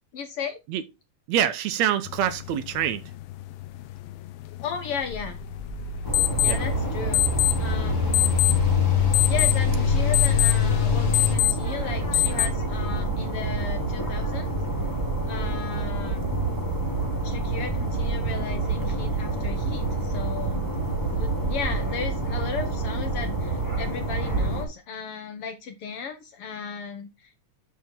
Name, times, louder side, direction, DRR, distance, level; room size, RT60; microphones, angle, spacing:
voice 1, 0.1-0.6 4.6-5.4 6.4-7.3 7.6-8.4 9.3-14.5 15.3-16.2 17.2-20.7 21.1-27.3, left 6 dB, 65° left, 1.6 m, -35 dB
voice 2, 1.3-3.0 6.4-6.6, right 10 dB, 75° right, 1.9 m, -25 dB
sound 1, 2.1-12.5, left 19 dB, 85° left, 1.3 m, -28 dB
sound 2, 5.0-11.4, left 8 dB, 45° left, 1.5 m, -25 dB
sound 3, 6.0-24.7, right 3 dB, 10° left, 1.1 m, -28 dB
7.3 x 6.3 x 3.8 m
omnidirectional pair, 3.3 m